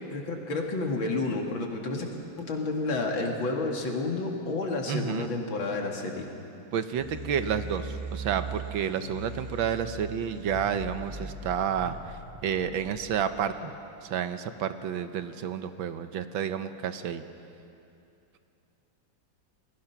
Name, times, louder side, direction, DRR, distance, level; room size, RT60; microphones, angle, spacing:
voice 1, 0.1-2.1 2.5-6.3, left 3 dB, 80° left, 1 dB, 3.0 m, -30 dB
voice 2, 4.9-5.3 6.7-12.2 12.4-13.7 14.0-17.2, right 8 dB, 90° right, 10 dB, 1.7 m, -30 dB
sound 1, 7.0-13.5, right 2 dB, 15° right, 2.5 m, -40 dB
28.5 x 20.5 x 5.9 m, 2.8 s
omnidirectional pair, 2.1 m